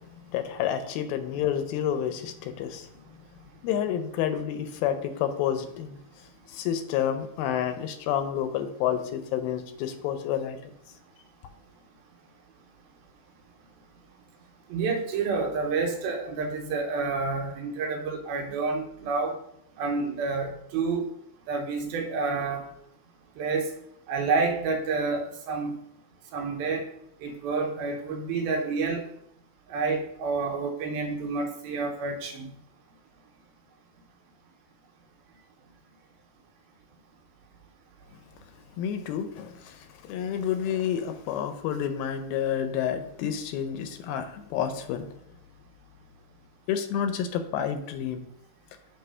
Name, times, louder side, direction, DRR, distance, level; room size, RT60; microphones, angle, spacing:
voice 1, 0.0-2.9 3.6-6.0 6.5-10.7 38.8-45.1 46.7-48.3, left 9 dB, 80° left, 8 dB, 2.4 m, -29 dB
voice 2, 14.7-19.4 19.8-21.0 21.5-22.6 23.4-23.7 24.1-25.8 26.3-26.8 27.2-29.0 29.7-32.5, right 4 dB, 85° right, 4 dB, 2.7 m, -29 dB
6.9 x 3.3 x 5.5 m, 0.73 s
omnidirectional pair, 4.2 m